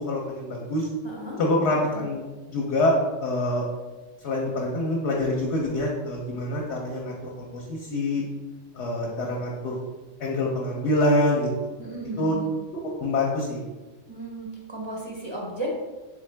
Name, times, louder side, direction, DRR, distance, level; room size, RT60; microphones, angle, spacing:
voice 1, 0.0-0.9 1.4-2.2 2.5-3.7 4.2-8.2 8.7-9.8 10.2-11.5 12.2-12.4 12.8-13.6, left 1 dB, 65° left, -2 dB, 0.9 m, -25 dB
voice 2, 1.0-1.4 11.8-12.5 14.1-15.7, right 2 dB, 35° right, -3 dB, 0.4 m, -35 dB
3.6 x 3.6 x 3.2 m, 1.2 s
omnidirectional pair, 1.3 m